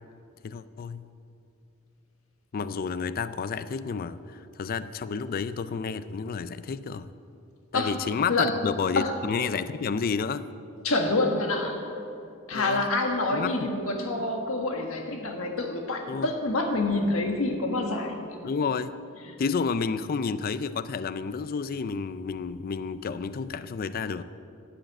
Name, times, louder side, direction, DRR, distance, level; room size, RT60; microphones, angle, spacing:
voice 1, 0.4-1.1 2.5-7.1 7.7-10.5 12.5-12.8 13.3-13.6 16.1-16.3 18.4-18.9 19.4-24.2, left 5 dB, 45° left, 14 dB, 0.4 m, -30 dB
voice 2, 10.8-11.8 12.5-18.2, left 2 dB, 85° left, 3 dB, 1.6 m, -27 dB
11.5 x 7.7 x 7.6 m, 2.5 s
head